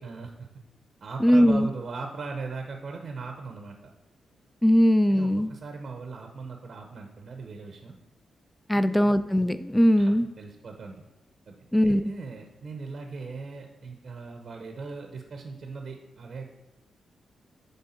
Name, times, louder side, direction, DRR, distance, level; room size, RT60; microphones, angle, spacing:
voice 1, 0.0-0.5 1.0-3.9 5.1-8.0 8.7-9.1 10.0-10.9 11.5-11.6 11.8-16.5, right 4 dB, 55° right, 3 dB, 0.7 m, -39 dB
voice 2, 1.2-1.7 4.6-5.5 8.7-10.3 11.7-12.0, equal, 10° left, 13 dB, 0.3 m, -20 dB
7.9 x 3.5 x 4.3 m, 0.99 s
cardioid pair, 80°, 0 cm